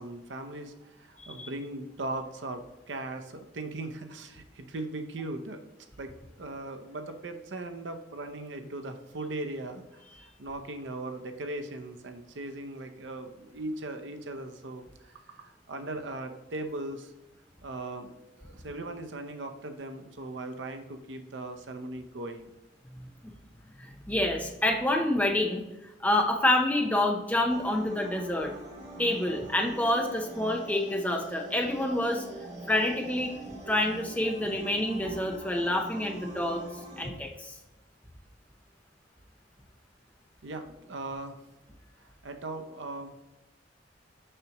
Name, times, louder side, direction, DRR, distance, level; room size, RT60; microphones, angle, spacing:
voice 1, 0.0-5.6 6.0-6.1 6.4-17.1 17.6-22.5 40.4-41.4 42.0-43.2, right 2 dB, 75° right, 7 dB, 0.7 m, -39 dB
voice 2, 22.9-23.3 23.8-25.6 26.0-28.5 29.0-32.2 32.7-33.3 33.7-36.6 37.0-37.6, left 1 dB, 10° left, 2 dB, 0.7 m, -27 dB
sound 1, 27.5-37.1, right 2 dB, 40° right, 2.3 m, -44 dB
6.6 x 5.8 x 3.0 m, 1.0 s
head